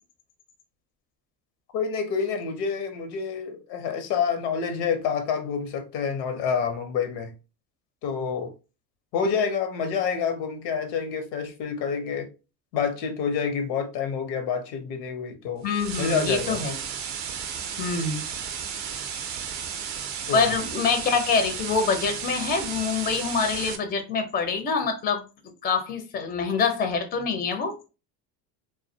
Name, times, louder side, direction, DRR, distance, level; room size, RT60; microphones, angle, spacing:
voice 1, 1.7-7.3 8.0-8.5 9.1-12.3 12.7-15.7 16.0-16.6 20.3-20.5, left 6 dB, 75° left, 0.7 m, -28 dB
voice 2, 15.6-16.7 17.8-18.2 20.3-25.2 25.6-27.8, left 5 dB, 20° left, 0.5 m, -25 dB
sound 1, 15.7-23.8, right 7 dB, 35° right, 0.5 m, -34 dB
2.2 x 2.1 x 2.6 m
hypercardioid pair, 80°, 49 cm